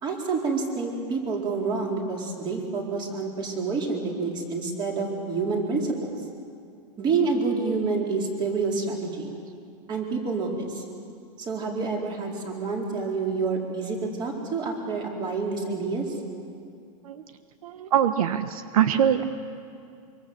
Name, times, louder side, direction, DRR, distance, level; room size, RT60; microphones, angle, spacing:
voice 1, 0.0-6.1 7.0-9.3 9.9-10.8 11.5-16.0, right 4 dB, 25° right, 0 dB, 4.4 m, -28 dB
voice 2, 17.6-19.3, right 9 dB, 80° right, 9 dB, 1.4 m, -23 dB
25.0 x 24.5 x 8.1 m, 2.4 s
supercardioid pair, 155°, 18 cm